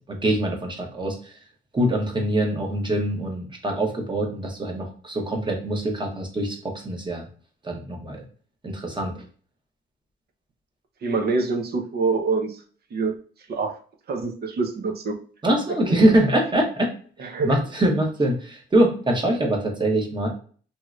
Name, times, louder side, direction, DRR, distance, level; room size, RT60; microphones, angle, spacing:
voice 1, 0.1-1.3 1.7-7.2 7.6-8.2 8.6-9.2 15.4-16.9 17.2-20.3, right 1 dB, 25° right, 1 dB, 1.0 m, -23 dB
voice 2, 11.0-12.6 12.9-13.2 13.5-13.7 14.1-15.2 17.2-17.6, right 4 dB, 55° right, 4 dB, 0.7 m, -25 dB
3.1 x 2.8 x 2.4 m, 0.43 s
cardioid pair, 90°, 20 cm